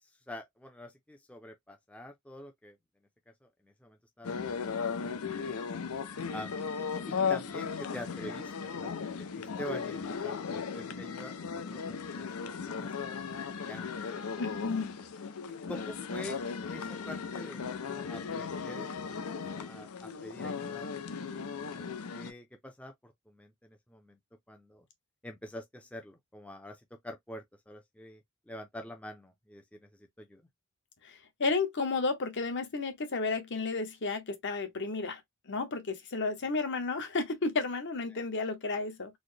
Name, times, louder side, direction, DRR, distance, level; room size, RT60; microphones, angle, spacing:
voice 1, 0.3-2.8 3.8-5.6 6.3-6.6 7.1-8.9 9.4-13.4 13.7-13.9 15.7-16.4 16.7-20.9 21.4-21.8 22.1-24.2 24.5-24.8 25.2-26.8 27.0-28.2 28.5-29.8 30.2-30.4, left 1 dB, 5° left, 0.5 m, -46 dB
sound 1, 4.2-22.3, left 6 dB, 85° left, 0.6 m, -36 dB
voice 2, 14.4-14.9 31.0-35.2 35.5-39.2, left 3 dB, 55° left, 1.0 m, -32 dB
4.1 x 2.1 x 3.2 m
head